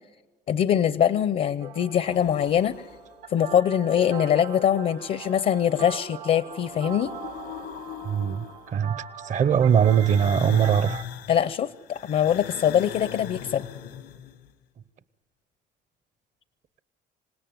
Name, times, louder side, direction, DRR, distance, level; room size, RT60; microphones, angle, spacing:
voice 1, 0.5-2.8 3.3-7.1 11.3-13.7, left 9 dB, 55° left, 0.6 m, -23 dB
sound 1, 1.6-11.0, right 8 dB, 90° right, 1.7 m, -41 dB
sound 2, 2.1-3.3 5.1-6.0 6.3-8.9 9.6-14.5, left 10 dB, 85° left, 1.3 m, -41 dB
voice 2, 8.0-8.4 8.7-11.0, right 8 dB, 45° right, 0.8 m, -21 dB
26.5 x 17.0 x 9.2 m
cardioid pair, 110°, 17 cm